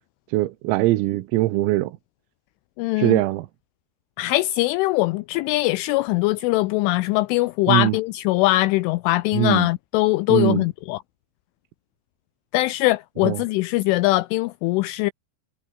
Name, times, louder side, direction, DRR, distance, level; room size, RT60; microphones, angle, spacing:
voice 1, 0.3-2.0 3.0-3.5 7.7-8.0 9.3-9.7 10.3-10.7 13.2-13.4, right 18 dB, 90° right, 3.9 m, -21 dB
voice 2, 2.8-3.2 4.2-11.0 12.5-15.1, left 19 dB, 80° left, 2.9 m, -21 dB
omnidirectional pair, 6.0 m